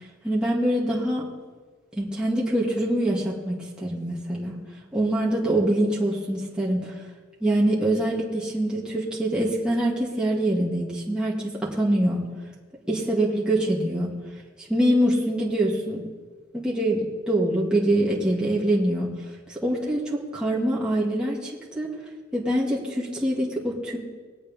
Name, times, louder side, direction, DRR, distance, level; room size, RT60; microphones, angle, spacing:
voice 1, 0.2-1.2 1.9-4.6 4.9-7.0 7.4-11.3 11.7-12.2 12.9-14.1 14.7-16.0 16.5-19.1 19.5-21.9 22.3-24.0, right 1 dB, 5° right, -6 dB, 2.3 m, -24 dB
21.0 x 8.6 x 3.6 m, 1.4 s
head